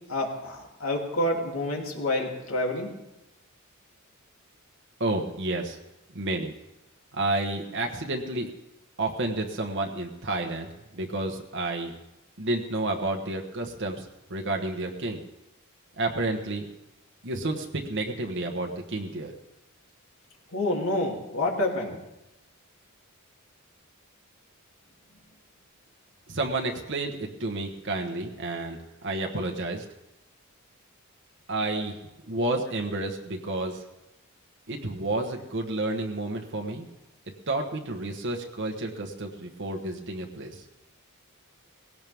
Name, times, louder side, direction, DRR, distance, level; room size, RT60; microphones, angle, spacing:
voice 1, 0.1-2.9 20.5-22.0, left 1 dB, 75° left, 0 dB, 3.0 m, -28 dB
voice 2, 5.0-5.8 6.1-6.5 7.1-8.5 9.0-10.7 10.9-11.9 12.4-14.0 14.3-15.2 16.0-16.6 17.2-19.3 26.3-29.8 31.5-32.0 32.3-33.8 34.7-36.9 37.5-40.6, right 2 dB, 55° right, 2 dB, 1.3 m, -30 dB
19.0 x 17.0 x 3.6 m, 0.93 s
head